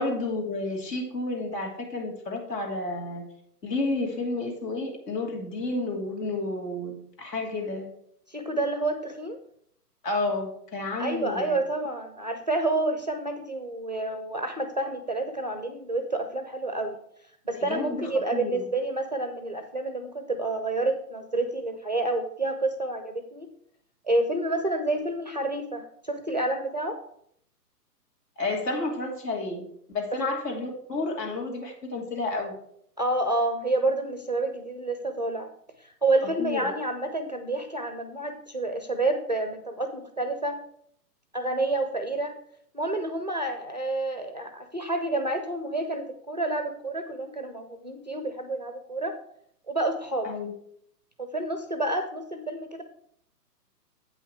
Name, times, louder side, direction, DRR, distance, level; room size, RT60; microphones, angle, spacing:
voice 1, 0.0-3.2 3.6-7.9 10.0-11.6 17.5-18.6 28.4-29.7 29.9-32.5 36.4-36.7 50.2-50.5, left 2 dB, 75° left, 1 dB, 3.0 m, -31 dB
voice 2, 8.3-9.4 11.0-17.0 17.4-23.5 24.1-27.0 33.0-35.5 35.8-40.6 41.3-42.3 42.7-49.2 49.7-50.3 51.2-52.8, right 2 dB, 30° right, 7 dB, 0.3 m, -29 dB
8.4 x 5.9 x 4.6 m, 0.68 s
hypercardioid pair, 145°, 49 cm